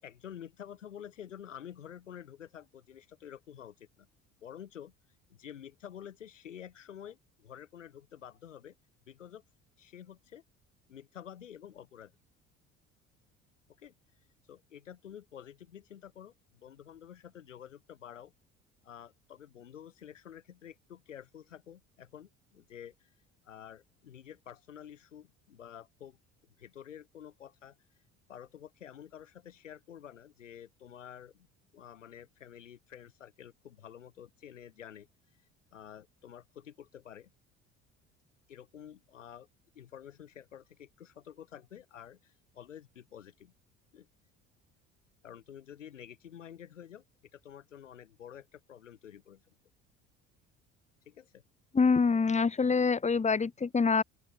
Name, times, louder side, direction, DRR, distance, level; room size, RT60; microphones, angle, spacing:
voice 1, 0.0-4.1 4.4-4.9 5.3-8.7 9.1-9.4 9.8-10.4 10.9-12.1 13.8-13.9 14.5-18.3 18.8-23.1 23.4-26.2 26.6-27.8 28.3-31.5 31.7-35.1 35.7-37.3 38.5-39.5 39.7-43.5 43.9-44.1 45.2-47.0 47.3-49.5 51.1-51.4, left 9 dB, 85° left, 4.4 m, -49 dB
voice 2, 51.7-54.0, left 5 dB, 20° left, 1.4 m, -25 dB
open air
hypercardioid pair, 60°, 36 cm